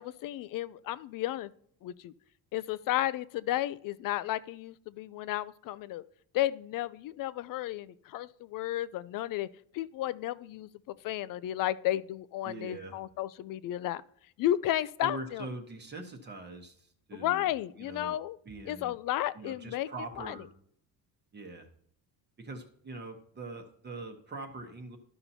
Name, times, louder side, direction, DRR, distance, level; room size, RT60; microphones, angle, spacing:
voice 1, 0.0-1.5 1.8-2.1 2.5-6.0 6.3-9.5 9.7-14.0 14.4-15.5 17.1-18.4 18.7-19.9 20.2-20.3, left 13 dB, 55° left, 18 dB, 0.5 m, -33 dB
voice 2, 12.4-13.0 15.0-17.5 17.8-18.1 18.4-18.9 19.3-20.5 21.3-21.7 22.4-25.0, right 2 dB, 25° right, 4 dB, 1.0 m, -43 dB
13.0 x 5.7 x 2.7 m, 0.65 s
cardioid pair, 150°, 40 cm